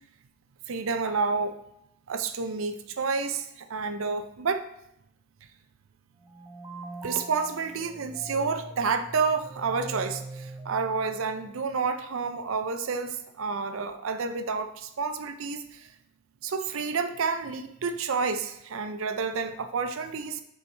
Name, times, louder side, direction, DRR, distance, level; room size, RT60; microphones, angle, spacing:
voice 1, 0.7-1.5 2.1-4.7 7.0-15.9 16.4-20.4, right 5 dB, 70° right, 9 dB, 0.5 m, -29 dB
sound 1, 6.2-11.7, right 2 dB, 15° right, 0.5 m, -42 dB
6.9 x 4.5 x 3.3 m, 0.78 s
head